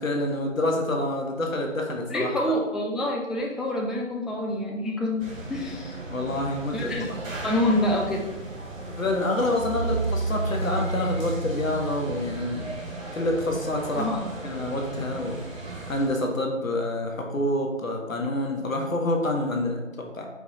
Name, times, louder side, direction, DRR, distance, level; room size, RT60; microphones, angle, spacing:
voice 1, 0.0-2.4 6.1-7.2 8.9-12.7 13.1-14.1 14.4-15.4 15.9-20.3, left 1 dB, 85° left, 1 dB, 1.0 m, -27 dB
voice 2, 2.1-5.2 5.5-6.0 6.7-7.0 7.4-8.3 13.9-14.2, left 1 dB, ahead, -1 dB, 0.4 m, -26 dB
sound 1, 5.2-16.1, right 2 dB, 75° right, 1.0 m, -37 dB
sound 2, 9.6-12.7, right 3 dB, 50° left, 1.1 m, -30 dB
4.8 x 2.1 x 3.7 m, 1.1 s
figure-of-eight pair, 180°, 39 cm